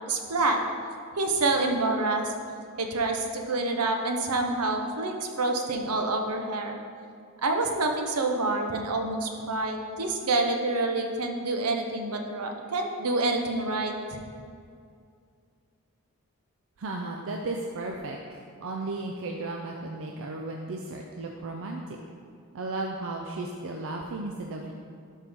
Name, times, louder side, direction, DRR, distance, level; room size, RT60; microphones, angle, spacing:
voice 1, 0.1-0.6 1.2-2.3 2.8-6.8 7.4-14.2, right 2 dB, 85° right, 3 dB, 0.9 m, -27 dB
voice 2, 16.8-18.2 18.6-22.0 22.5-24.7, right 2 dB, 60° right, 1 dB, 0.5 m, -34 dB
12.0 x 4.5 x 3.6 m, 2.3 s
head